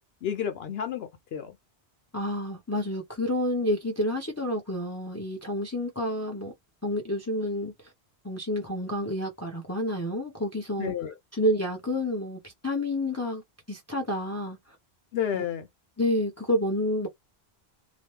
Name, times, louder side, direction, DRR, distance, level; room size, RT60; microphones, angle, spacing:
voice 1, 0.0-1.6 10.8-11.1 15.1-15.7, left 9 dB, 70° left, 0.8 m, -31 dB
voice 2, 2.1-6.5 6.8-7.9 8.2-10.9 11.3-13.4 13.7-14.8 15.3-15.4 16.0-17.1, left 1 dB, 15° left, 0.8 m, -29 dB
3.0 x 2.0 x 3.1 m
omnidirectional pair, 1.1 m